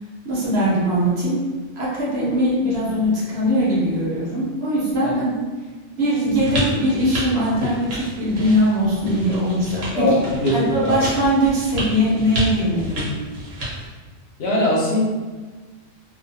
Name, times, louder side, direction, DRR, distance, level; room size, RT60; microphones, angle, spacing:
voice 1, 0.2-1.5 1.8-5.4 6.0-10.1 10.5-13.1, equal, 60° right, -7 dB, 1.1 m, -21 dB
sound 1, 6.4-13.9, equal, 85° right, 1.2 m, -30 dB
voice 2, 9.9-11.0 14.4-15.0, left 1 dB, 65° left, -4 dB, 0.8 m, -21 dB
2.5 x 2.3 x 2.7 m, 1.4 s
omnidirectional pair, 1.3 m